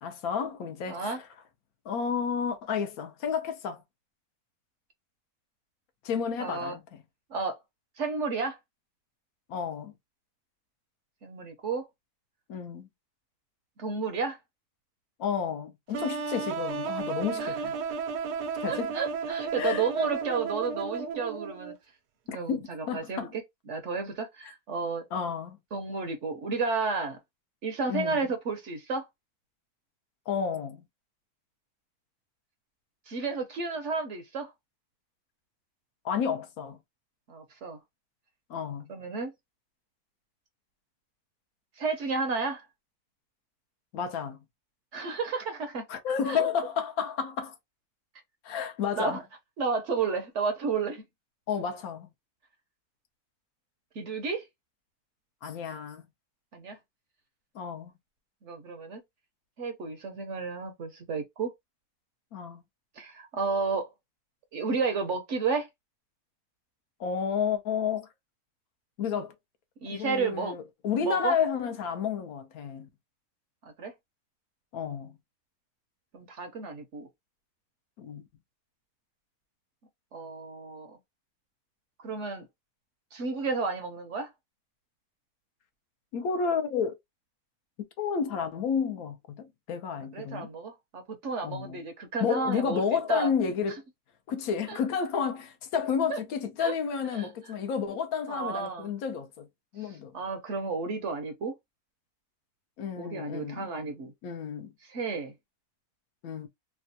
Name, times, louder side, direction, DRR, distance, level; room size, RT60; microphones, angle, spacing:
voice 1, 0.0-1.2 1.9-3.8 6.0-6.8 9.5-9.9 12.5-12.9 15.2-17.7 18.6-18.9 19.6-19.8 22.3-23.3 25.1-25.6 27.9-28.2 30.3-30.8 36.0-36.8 38.5-38.9 43.9-44.4 45.9-47.5 48.4-49.2 51.5-52.1 55.4-56.0 57.5-57.9 62.3-62.6 67.0-68.1 69.0-69.3 69.9-72.9 74.7-75.1 78.0-78.2 86.1-87.0 88.0-90.5 91.4-91.8 92.2-93.8 94.3-99.5 99.7-100.1 102.8-103.6 104.2-104.7 106.2-106.5, left 6 dB, 70° left, 1.0 m, -31 dB
voice 2, 0.9-1.2 6.4-6.8 7.3-7.6 8.0-8.6 11.2-11.8 13.8-14.4 17.4-17.7 18.7-21.7 22.3-25.1 25.7-27.2 27.6-29.1 33.1-34.5 37.3-37.8 38.9-39.3 41.8-42.6 44.9-45.8 46.3-46.5 49.0-49.2 49.6-51.0 53.9-54.5 56.5-56.8 58.4-59.0 59.6-61.5 63.0-63.9 64.5-65.7 69.8-70.5 71.0-71.3 73.8-73.9 76.1-77.1 80.1-81.0 82.0-82.5 83.1-84.3 90.1-92.8 93.1-93.3 94.7-94.8 96.1-96.2 96.6-96.7 97.1-97.3 98.3-98.9 99.8-101.5 103.0-104.1 104.8-105.3, right 4 dB, 60° right, 0.9 m, -32 dB
sound 1, 15.9-21.8, right 5 dB, 90° right, 1.2 m, -33 dB
3.3 x 2.2 x 2.6 m
omnidirectional pair, 1.6 m